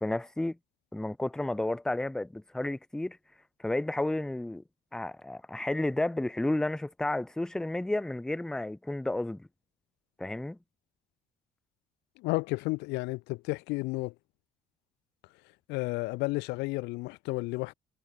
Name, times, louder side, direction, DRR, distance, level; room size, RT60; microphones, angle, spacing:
voice 1, 0.0-0.6 0.9-3.2 3.6-4.6 4.9-9.5 10.2-10.6, left 1 dB, 5° left, 0.4 m, -32 dB
voice 2, 12.2-14.1 15.7-17.7, left 23 dB, 90° left, 0.5 m, -32 dB
cardioid pair, 110°, 17 cm